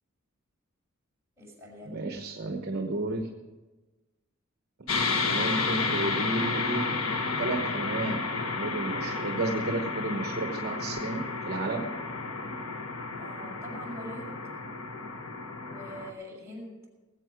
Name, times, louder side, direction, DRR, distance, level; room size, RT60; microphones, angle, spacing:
voice 1, 1.4-2.1 13.2-14.4 15.6-16.9, equal, 10° right, -4 dB, 6.1 m, -43 dB
voice 2, 1.9-3.3 5.2-6.9 7.4-8.2 8.5-11.8, right 2 dB, 50° right, 3 dB, 1.1 m, -32 dB
sound 1, 4.9-16.1, left 4 dB, 85° left, 1.4 m, -31 dB
19.5 x 8.3 x 6.1 m, 1.2 s
head